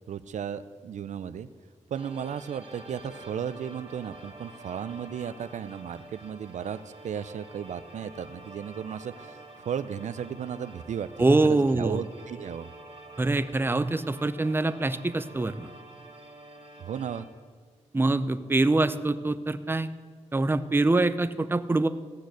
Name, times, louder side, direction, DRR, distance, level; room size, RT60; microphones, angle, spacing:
voice 1, 0.1-1.5 1.9-12.7 16.8-17.3, right 8 dB, 85° right, 13 dB, 0.5 m, -35 dB
sound 1, 1.9-17.2, right 1 dB, 50° right, 2.8 m, -48 dB
voice 2, 11.2-12.0 13.2-15.7 17.9-19.9 20.3-21.9, right 2 dB, 20° right, 12 dB, 0.6 m, -24 dB
15.0 x 6.4 x 8.2 m, 1.5 s
cardioid pair, 80°, 12 cm